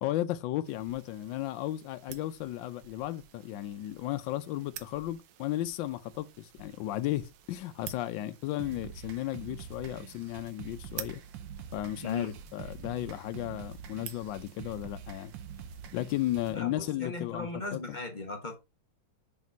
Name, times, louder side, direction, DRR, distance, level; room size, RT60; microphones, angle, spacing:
voice 1, 0.0-11.2 11.7-15.3 15.9-18.0, left 14 dB, 75° left, 1.3 m, -34 dB
sound 1, 0.6-16.5, right 10 dB, 90° right, 1.6 m, -51 dB
sound 2, 8.6-16.6, right 7 dB, 75° right, 1.5 m, -46 dB
voice 2, 12.0-12.3 16.5-18.5, left 3 dB, 30° left, 1.0 m, -38 dB
6.4 x 4.1 x 4.5 m
omnidirectional pair, 2.1 m